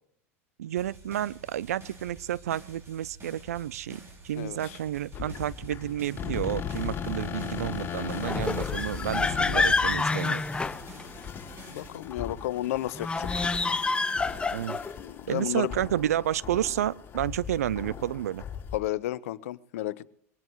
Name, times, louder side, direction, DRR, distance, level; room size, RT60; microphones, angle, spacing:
voice 1, 0.6-10.4 14.5-14.8 15.3-18.4, right 11 dB, 75° right, 21 dB, 0.5 m, -31 dB
sound 1, 0.8-11.9, right 3 dB, 30° right, 5.8 m, -49 dB
voice 2, 4.4-4.8 11.7-13.3 15.0-15.7 18.7-20.1, left 14 dB, 70° left, 19 dB, 0.7 m, -32 dB
sound 2, 5.1-18.8, left 8 dB, 30° left, 4.6 m, -37 dB
sound 3, 8.2-11.4 13.0-15.0, left 3 dB, 10° left, 0.8 m, -28 dB
22.5 x 18.0 x 3.1 m, 0.66 s
hypercardioid pair, 90°, 8 cm